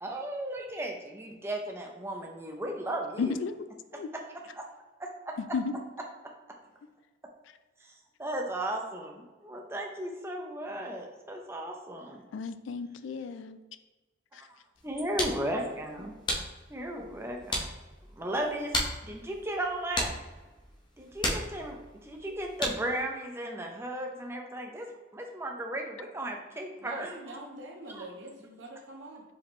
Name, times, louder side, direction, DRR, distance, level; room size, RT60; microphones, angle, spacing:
voice 1, 0.0-3.4 4.1-4.2 4.5-4.6 5.0-5.3 7.8-7.9 8.2-12.2 14.3-14.5 14.8-16.1 16.7-17.7 18.2-18.7 19.0-20.1 21.0-21.8 22.0-27.1 27.9-28.0, right 1 dB, 15° right, 1 dB, 0.5 m, -35 dB
voice 2, 3.2-3.6 3.9-4.1 5.5-5.8 12.3-13.6 14.3-14.4, left 5 dB, 85° left, 11 dB, 0.3 m, -33 dB
sound 1, 14.7-23.0, left 1 dB, 25° left, 0.7 m, -36 dB
voice 3, 26.8-29.2, right 1 dB, 75° right, 0 dB, 1.0 m, -44 dB
4.8 x 3.5 x 3.1 m, 1.2 s
head